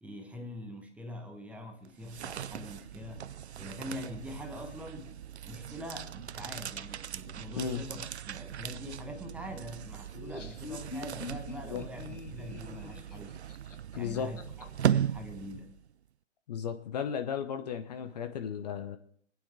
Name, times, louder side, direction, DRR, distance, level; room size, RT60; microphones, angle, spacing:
voice 1, 0.0-5.2 5.4-13.4 13.9-15.8, left 1 dB, 5° right, 1.1 m, -44 dB
sound 1, 1.8-15.9, right 9 dB, 65° right, 0.5 m, -38 dB
Laughter, 10.1-14.6, left 4 dB, 80° left, 1.4 m, -44 dB
voice 2, 14.0-14.3 16.5-19.0, left 7 dB, 35° left, 0.9 m, -35 dB
24.5 x 9.3 x 3.5 m
figure-of-eight pair, 125°, 36 cm